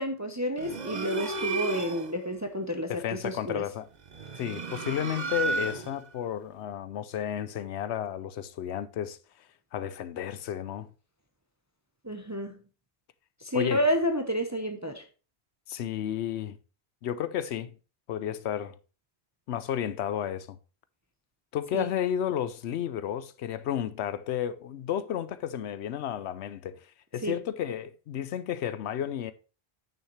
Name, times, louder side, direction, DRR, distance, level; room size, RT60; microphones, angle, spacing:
voice 1, 0.0-3.6 12.0-12.6 13.4-15.0 21.7-21.9 27.2-27.4, equal, 20° right, 0.7 m, -30 dB
sound 1, 0.6-2.2 4.0-6.1, right 4 dB, 45° right, 0.8 m, -33 dB
voice 2, 2.9-3.9 4.4-9.2 9.7-10.9 13.5-13.8 15.7-16.6 17.0-17.7 18.1-18.8 19.5-20.6 21.5-26.9 27.1-29.3, left 10 dB, 80° left, 0.9 m, -32 dB
8.9 x 6.5 x 3.2 m
omnidirectional pair, 1.1 m